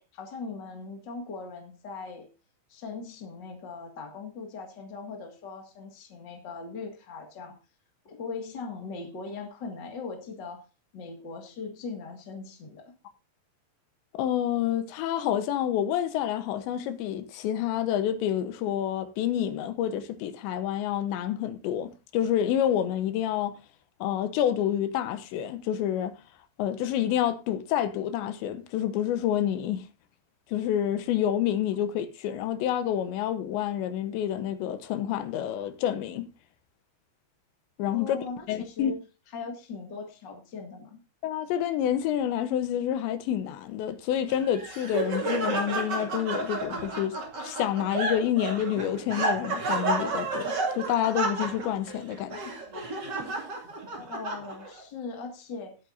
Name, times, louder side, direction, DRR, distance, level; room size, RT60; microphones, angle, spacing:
voice 1, 0.0-2.3 2.7-7.6 8.0-10.6 10.9-12.9 37.8-39.0 39.3-41.0 54.0-55.8, left 4 dB, 50° left, 1.3 m, -40 dB
voice 2, 14.1-23.6 24.0-26.2 26.6-29.9 30.5-36.3 37.8-38.9 41.2-47.2 47.4-52.4, left 10 dB, 80° left, 3.2 m, -28 dB
Laughter, 44.3-54.8, right 2 dB, 35° right, 2.0 m, -31 dB
18.5 x 8.9 x 2.6 m
omnidirectional pair, 5.3 m